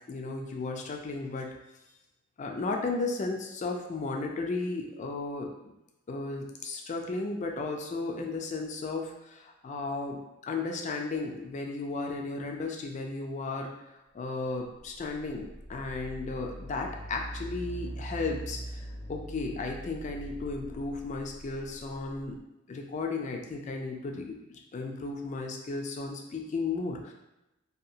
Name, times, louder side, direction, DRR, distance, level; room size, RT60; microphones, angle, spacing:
voice 1, 0.1-1.5 2.4-5.5 6.1-13.7 14.1-22.4 22.7-27.1, left 3 dB, 35° left, 2 dB, 0.3 m, -34 dB
sound 1, 14.8-22.4, right 1 dB, 35° right, 0.5 m, -42 dB
2.7 x 2.3 x 2.6 m, 0.93 s
head